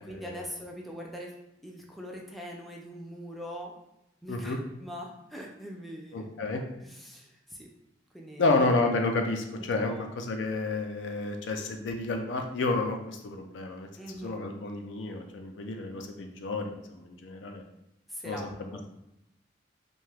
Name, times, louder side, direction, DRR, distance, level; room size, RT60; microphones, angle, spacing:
voice 1, 0.0-1.4 1.6-3.7 4.2-6.3 6.8-7.7 8.1-8.6 9.6-10.2 14.0-14.4 18.1-18.8, equal, ahead, -1 dB, 0.3 m, -42 dB
voice 2, 4.3-4.6 6.1-6.6 8.4-13.0 13.2-13.9 14.2-17.6 18.2-18.4, left 3 dB, 75° left, 4 dB, 0.4 m, -30 dB
2.7 x 2.2 x 3.2 m, 0.84 s
head